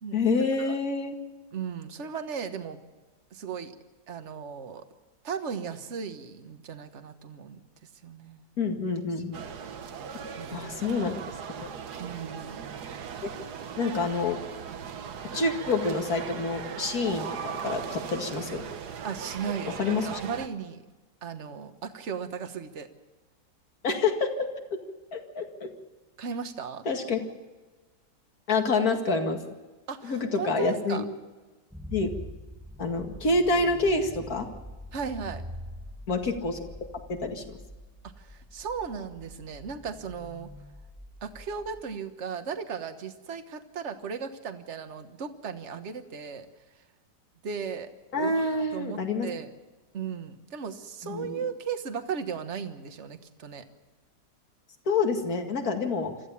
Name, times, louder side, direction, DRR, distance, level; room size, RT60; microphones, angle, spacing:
voice 1, 0.1-1.1 8.6-9.4 10.5-11.2 11.6-11.7 13.2-13.3 13.8-14.4 15.3-18.6 19.8-20.2 23.8-24.3 24.7-24.8 25.1-25.7 26.9-27.3 28.5-29.4 30.0-31.0 31.9-32.1 32.8-34.5 36.1-36.7 37.1-37.6 48.1-49.3 51.0-51.4 54.9-56.1, left 3 dB, 55° left, 4 dB, 2.5 m, -27 dB
voice 2, 1.5-2.8 3.3-3.7 4.1-4.8 5.2-8.4 10.4-11.1 12.0-12.6 19.0-20.8 21.2-22.9 26.2-26.8 29.9-31.0 34.9-35.4 38.0-40.5 41.2-46.5 47.4-49.5 49.9-53.6, right 6 dB, 45° right, 8 dB, 1.5 m, -36 dB
sound 1, 9.3-20.5, right 7 dB, 70° right, 1.6 m, -38 dB
sound 2, 31.7-41.8, left 1 dB, ahead, 0.6 m, -44 dB
26.0 x 14.5 x 7.1 m, 1.3 s
omnidirectional pair, 1.8 m